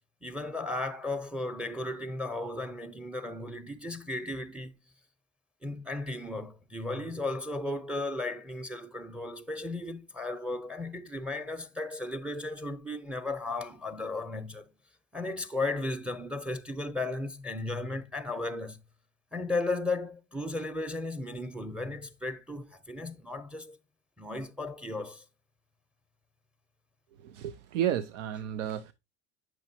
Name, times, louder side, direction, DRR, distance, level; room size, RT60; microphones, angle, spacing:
voice 1, 0.2-4.7 5.6-14.7 15.1-18.8 19.3-23.8 24.2-25.2, left 2 dB, 5° right, 0.7 m, -35 dB
voice 2, 27.2-28.9, right 10 dB, 85° right, 0.5 m, -32 dB
8.8 x 6.2 x 2.7 m
hypercardioid pair, 70°, 35 cm